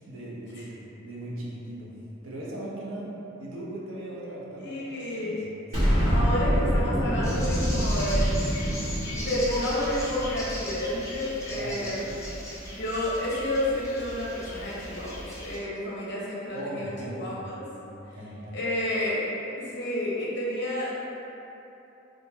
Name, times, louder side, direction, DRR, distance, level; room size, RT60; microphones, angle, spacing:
voice 1, 0.1-2.0 2.2-5.5 5.8-6.4 11.5-12.2 16.5-17.4 17.9-18.6, right 1 dB, 85° right, -5 dB, 0.7 m, -39 dB
voice 2, 4.6-5.4 6.0-8.7 9.1-12.1 12.8-17.6 18.5-19.3 19.5-20.9, left 1 dB, 60° left, -6 dB, 0.8 m, -30 dB
Explosion, 5.7-10.9, equal, 40° right, 1.2 m, -26 dB
sound 1, 7.2-15.6, left 1 dB, 15° left, 0.5 m, -39 dB
3.7 x 2.6 x 2.7 m, 3.0 s
head